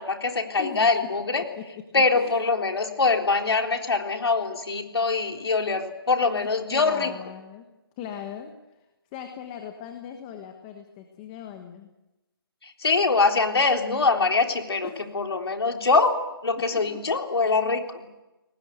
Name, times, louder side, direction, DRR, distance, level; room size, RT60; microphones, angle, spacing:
voice 1, 0.0-1.4 1.9-7.1 12.6-14.9 15.1-18.1, left 4 dB, 80° left, 3 dB, 3.8 m, -23 dB
voice 2, 1.4-1.7 2.1-2.3 6.7-7.7 8.0-8.5 9.1-11.9 14.8-15.0 16.7-17.2, left 8 dB, 15° left, 6 dB, 1.3 m, -39 dB
29.0 x 19.5 x 8.0 m, 1.0 s
hypercardioid pair, 170°, 13 cm